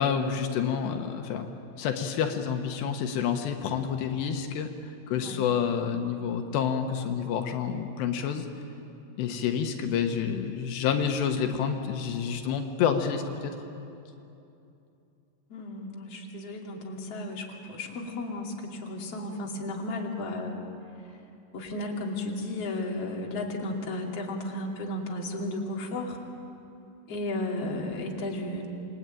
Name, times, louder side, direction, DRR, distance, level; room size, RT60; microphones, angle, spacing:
voice 1, 0.0-1.5 1.8-8.5 9.2-13.6, left 7 dB, 85° left, 5 dB, 3.5 m, -28 dB
voice 2, 5.1-5.5 15.5-20.6 21.5-26.2 27.1-28.7, left 1 dB, 40° left, -1 dB, 3.5 m, -34 dB
28.0 x 22.0 x 9.1 m, 2.7 s
omnidirectional pair, 4.8 m